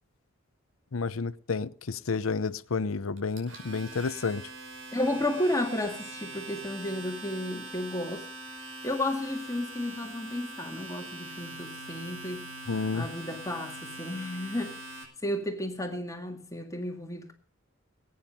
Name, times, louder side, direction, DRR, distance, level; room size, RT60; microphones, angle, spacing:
voice 1, 0.9-4.5 12.7-13.1, left 4 dB, 85° left, 0.7 m, -30 dB
Domestic sounds home sounds, 3.2-15.0, right 2 dB, 65° right, 5.7 m, -43 dB
voice 2, 4.9-12.5 12.9-17.3, left 1 dB, 15° left, 1.9 m, -33 dB
20.5 x 9.6 x 5.3 m
head